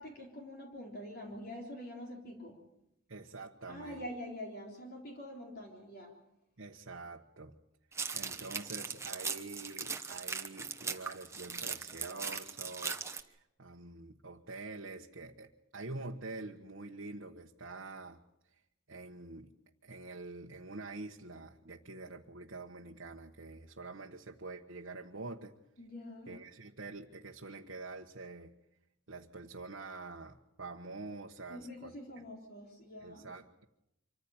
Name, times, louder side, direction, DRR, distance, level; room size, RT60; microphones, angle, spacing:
voice 1, 0.0-2.6 3.7-6.1 25.8-26.4 31.5-33.3, left 1 dB, 45° left, 0 dB, 3.8 m, -45 dB
voice 2, 3.1-4.1 6.6-7.6 8.1-18.2 18.9-19.5 19.8-25.5 26.3-28.5 29.1-31.9 33.0-33.7, right 3 dB, 60° right, 0 dB, 1.2 m, -46 dB
sound 1, 7.9-13.2, right 5 dB, 15° right, 1.1 m, -39 dB
25.5 x 15.0 x 8.8 m, 0.85 s
head